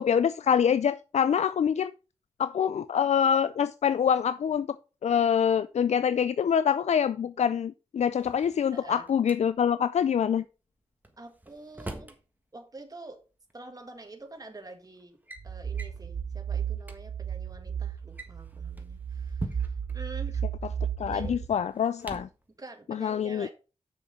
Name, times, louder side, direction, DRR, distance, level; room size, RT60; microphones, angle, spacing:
voice 1, 0.0-1.9 2.4-4.7 5.0-10.4 21.0-22.3 22.9-23.5, left 8 dB, 80° left, 0.4 m, -25 dB
Drawer open or close, 8.0-9.4 11.0-12.2 13.5-13.6 14.4-14.7 15.0-15.4 15.8-16.0 16.5-16.6 16.8-17.0 18.0-20.0 21.1-22.4, right 1 dB, 15° right, 1.5 m, -42 dB
voice 2, 8.7-9.1 11.2-12.2 12.5-13.2 13.5-15.2 15.4-20.4 21.1-21.4 22.6-23.5, right 2 dB, 35° right, 1.6 m, -46 dB
sound 1, 15.4-21.5, right 8 dB, 60° right, 0.8 m, -34 dB
7.4 x 6.4 x 5.1 m
wide cardioid pair, 80°, 11 cm